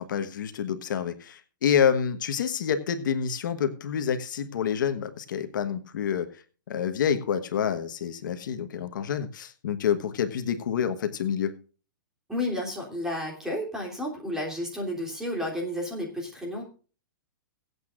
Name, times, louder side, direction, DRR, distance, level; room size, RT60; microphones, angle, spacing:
voice 1, 0.0-6.4 6.7-11.6, left 8 dB, 65° left, 8 dB, 1.3 m, -28 dB
voice 2, 12.3-16.6, left 1 dB, 5° right, -1 dB, 3.2 m, -31 dB
23.0 x 8.3 x 2.5 m, 0.37 s
hypercardioid pair, 160°, 11 cm